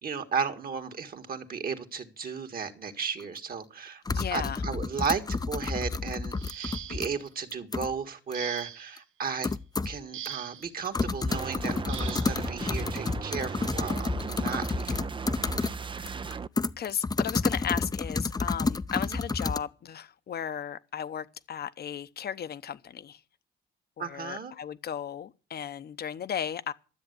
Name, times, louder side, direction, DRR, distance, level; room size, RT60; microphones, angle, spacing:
voice 1, 0.0-4.0 4.3-9.5 9.9-15.1 19.1-19.2 24.0-24.5, right 6 dB, 50° right, 1.9 m, -34 dB
sound 1, 3.2-3.3 4.1-7.1 7.5-7.9 8.3-8.4 9.0-9.1 9.4-10.0 10.3-10.4 10.6-15.8 16.1-19.6, left 3 dB, 20° left, 0.6 m, -30 dB
voice 2, 4.1-4.6 15.9-16.1 16.8-23.2 24.0-26.7, left 8 dB, 55° left, 0.9 m, -35 dB
sound 2, 6.3-7.2 8.3-9.0 10.1-10.7 11.9-12.4 13.6-13.7 14.2-14.4, right 12 dB, 85° right, 0.7 m, -41 dB
sound 3, 11.3-16.5, right 5 dB, 25° right, 0.5 m, -37 dB
13.0 x 7.6 x 8.2 m
cardioid pair, 90°, 20 cm